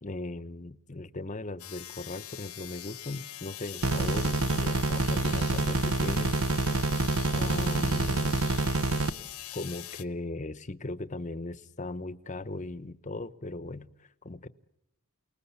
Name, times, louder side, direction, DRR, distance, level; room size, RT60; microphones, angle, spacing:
voice 1, 0.0-6.4 7.3-8.4 9.5-14.5, left 2 dB, 35° left, 14 dB, 0.9 m, -38 dB
sound 1, 1.6-10.0, left 13 dB, 85° left, 1.1 m, -42 dB
sound 2, 3.8-9.1, right 2 dB, 75° right, 0.9 m, -27 dB
29.0 x 20.0 x 8.3 m, 0.91 s
head